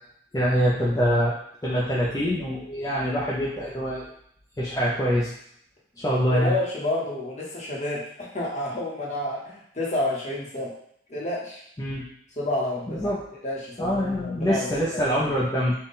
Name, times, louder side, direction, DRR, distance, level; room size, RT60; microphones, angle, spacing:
voice 1, 0.3-1.4 1.6-4.1 4.6-5.3 6.0-6.5 11.8-12.0 12.9-13.2 13.8-15.7, equal, 20° left, -7 dB, 0.5 m, -24 dB
voice 2, 6.3-10.7 11.1-11.6 12.4-13.2 13.4-15.0, left 1 dB, 40° left, -4 dB, 1.0 m, -30 dB
3.7 x 2.3 x 4.0 m, 0.69 s
head